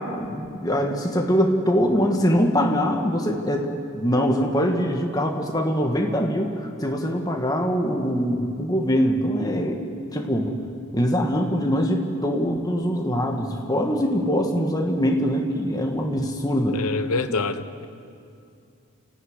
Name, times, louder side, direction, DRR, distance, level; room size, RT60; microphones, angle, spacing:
voice 1, 0.0-9.8 10.1-10.6 10.9-16.8 17.3-17.4, equal, 15° left, 2 dB, 2.0 m, -23 dB
voice 2, 16.7-17.9, left 4 dB, 90° left, 11 dB, 1.1 m, -26 dB
28.0 x 15.0 x 10.0 m, 2.5 s
head